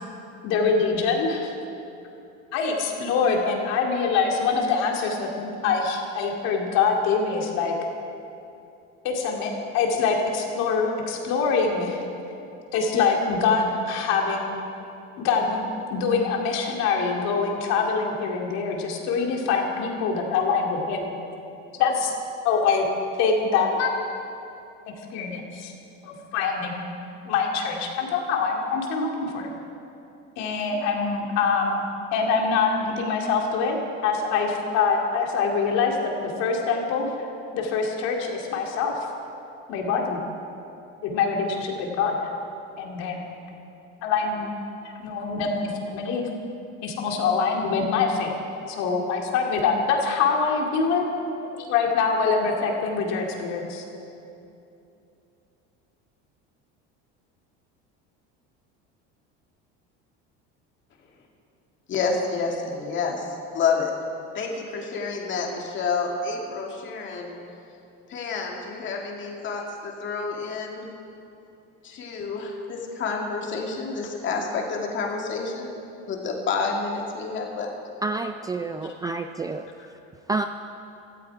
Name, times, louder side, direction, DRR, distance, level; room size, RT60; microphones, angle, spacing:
voice 1, 0.4-1.5 2.5-7.7 9.0-12.0 12.7-14.6 15.2-21.1 21.7-22.1 22.4-22.8 23.2-23.9 25.1-25.7 26.0-27.0 27.2-29.5 30.4-31.8 32.1-33.8 34.0-37.1 37.5-38.9 39.7-40.2 41.0-42.3 42.8-43.4 44.0-44.6 45.0-46.3 46.8-48.3 48.7-51.0 51.6-53.8, left 5 dB, 65° left, 1 dB, 2.5 m, -24 dB
voice 2, 61.9-63.9 64.3-67.4 68.1-70.9 71.8-77.7 78.8-79.1, left 4 dB, 40° left, 0 dB, 2.3 m, -29 dB
voice 3, 78.0-79.7 80.3-80.5, right 3 dB, 15° right, 7 dB, 0.3 m, -28 dB
17.0 x 13.5 x 4.8 m, 2.8 s
cardioid pair, 145°, 29 cm